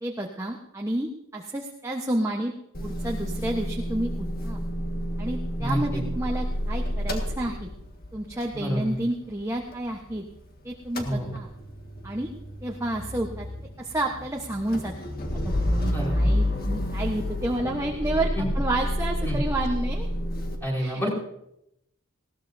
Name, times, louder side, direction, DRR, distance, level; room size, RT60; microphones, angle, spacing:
voice 1, 0.0-2.5 2.8-4.6 5.2-7.7 8.1-10.2 10.6-11.5 12.0-12.3 12.6-13.5 13.8-14.9 15.7-18.3 18.5-20.1 20.8-21.0, right 1 dB, 15° right, 0 dB, 1.1 m, -30 dB
Motor vehicle (road) / Engine starting / Idling, 2.7-10.5 10.7-20.6, equal, 45° left, 1.8 m, -30 dB
voice 2, 5.6-6.0 8.5-9.0 11.0-11.3 15.8-16.3 18.4-18.5 19.2-19.4 20.6-21.2, equal, 10° left, -3 dB, 4.8 m, -29 dB
20.0 x 16.5 x 2.7 m, 0.80 s
head